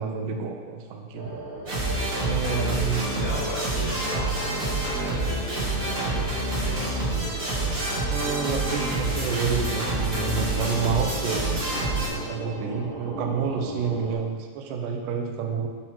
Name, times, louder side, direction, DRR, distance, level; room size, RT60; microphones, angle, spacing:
voice 1, 0.0-1.4 2.2-3.1 7.5-11.6 12.1-15.7, right 6 dB, 80° right, 3 dB, 1.9 m, -29 dB
sound 1, 1.1-14.1, right 1 dB, 55° right, 3.0 m, -37 dB
sound 2, 1.7-12.1, right 2 dB, 35° right, 1.5 m, -27 dB
voice 2, 2.9-6.9, left 2 dB, 55° left, -8 dB, 2.9 m, -37 dB
11.0 x 5.5 x 3.1 m, 1.5 s
omnidirectional pair, 4.7 m